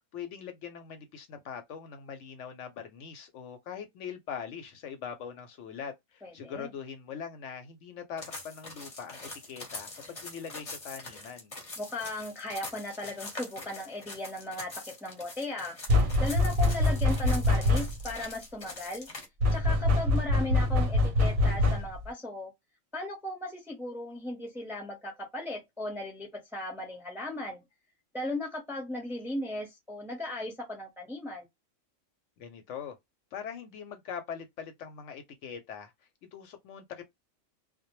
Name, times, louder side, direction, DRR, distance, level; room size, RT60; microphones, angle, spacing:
voice 1, 0.1-11.5 32.4-33.0 33.3-35.9 36.3-37.0, left 7 dB, 70° left, 0.8 m, -42 dB
voice 2, 6.2-6.7 11.8-19.1 19.5-22.5 22.9-27.6 28.1-31.4, left 1 dB, ahead, 0.5 m, -37 dB
sound 1, 8.2-19.2, left 2 dB, 30° left, 0.7 m, -44 dB
sound 2, 15.9-18.1 19.4-22.1, left 2 dB, 90° right, 1.0 m, -25 dB
2.1 x 2.1 x 2.9 m
omnidirectional pair, 1.4 m